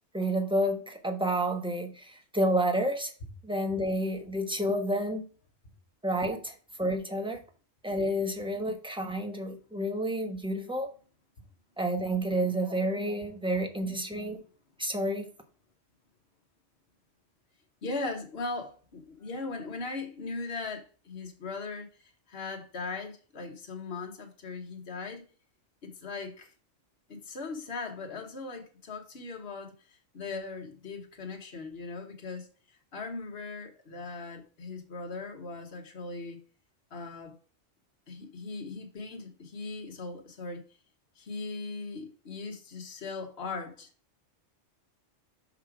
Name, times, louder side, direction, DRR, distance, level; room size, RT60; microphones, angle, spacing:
voice 1, 0.1-3.1 3.4-5.2 6.0-7.4 7.8-10.9 11.8-14.4 14.8-15.2, right 1 dB, 5° right, 1.1 m, -30 dB
voice 2, 17.8-25.2 25.8-26.5 27.1-36.4 36.9-37.4 38.1-40.6 41.2-43.9, left 3 dB, 55° left, 1.5 m, -39 dB
6.0 x 5.6 x 4.8 m
omnidirectional pair, 1.3 m